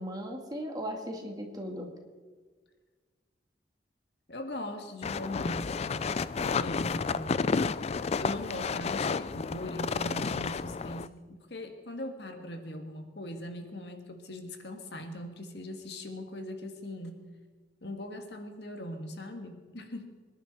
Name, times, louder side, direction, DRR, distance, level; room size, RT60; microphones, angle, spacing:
voice 1, 0.0-1.9, equal, 25° right, 2 dB, 2.2 m, -37 dB
voice 2, 4.3-6.0 6.4-7.6 8.2-17.2 17.8-20.1, left 1 dB, 70° left, 5 dB, 1.8 m, -40 dB
sound 1, 5.0-11.1, left 5 dB, 35° left, 0.4 m, -31 dB
25.5 x 11.0 x 4.3 m, 1.5 s
head